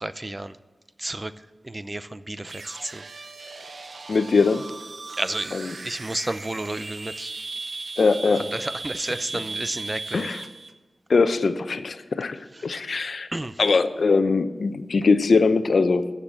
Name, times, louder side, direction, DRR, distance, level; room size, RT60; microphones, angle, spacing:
voice 1, 0.0-0.5 1.0-1.3 1.7-2.5 2.9-3.0 5.2-5.6 5.8-7.3 8.6-10.3 13.3-13.5, right 1 dB, 25° right, 13 dB, 0.6 m, -31 dB
sound 1, 2.4-10.7, right 3 dB, 70° right, 0.9 m, -37 dB
voice 2, 4.1-4.7 5.5-5.8 8.0-8.5 9.3-9.4 10.1-10.4 11.1-13.3 13.6-16.1, left 4 dB, 75° left, 11 dB, 0.7 m, -21 dB
14.5 x 6.8 x 7.6 m, 1.3 s
wide cardioid pair, 75°, 0 cm